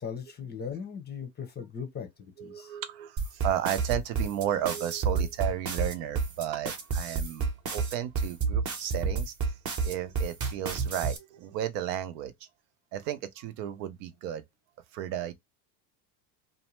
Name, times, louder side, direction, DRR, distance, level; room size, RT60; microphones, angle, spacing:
voice 1, 0.0-2.7, left 6 dB, 20° left, 0.6 m, -38 dB
voice 2, 2.4-9.3 9.8-12.3 12.9-14.4 14.9-15.3, right 10 dB, 75° right, 0.7 m, -33 dB
sound 1, 3.2-11.2, right 5 dB, 35° right, 0.9 m, -30 dB
2.7 x 2.1 x 3.0 m
supercardioid pair, 115°, 49 cm